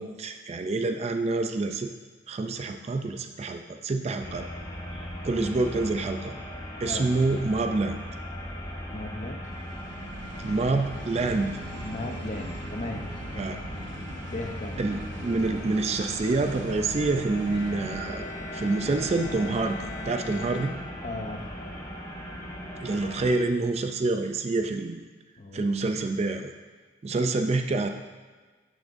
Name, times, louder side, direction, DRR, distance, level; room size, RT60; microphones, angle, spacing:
voice 1, 0.0-1.9 2.3-4.5 5.2-6.3 6.8-8.0 10.4-11.5 13.4-13.6 14.8-20.7 22.8-25.0 25.5-26.5 27.0-27.9, right 3 dB, 35° right, 7 dB, 0.3 m, -27 dB
sound 1, 4.2-23.4, equal, 20° left, 0.9 m, -38 dB
voice 2, 5.3-5.7 6.8-7.1 8.9-9.4 11.8-13.8 14.3-14.9 21.0-21.8 25.4-25.8, left 2 dB, 40° left, 4 dB, 0.6 m, -37 dB
sound 2, 9.5-18.0, right 2 dB, 70° right, 0.7 m, -42 dB
Bowed string instrument, 17.4-21.4, left 3 dB, 80° left, 2.3 m, -42 dB
10.5 x 6.0 x 2.6 m, 1.4 s
head